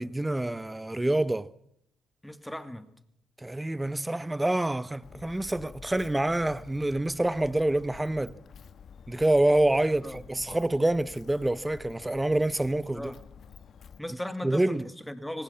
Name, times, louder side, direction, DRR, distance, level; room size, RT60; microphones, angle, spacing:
voice 1, 0.0-1.5 3.4-8.4 9.1-13.1 14.4-14.9, right 1 dB, 10° right, 1.0 m, -27 dB
voice 2, 2.2-2.9 10.0-10.2 12.9-13.2 14.0-15.4, left 1 dB, 5° left, 2.5 m, -37 dB
Walk footsteps, 5.0-14.0, left 7 dB, 55° left, 1.6 m, -50 dB
25.5 x 19.5 x 5.8 m
cardioid pair, 90°, 0 cm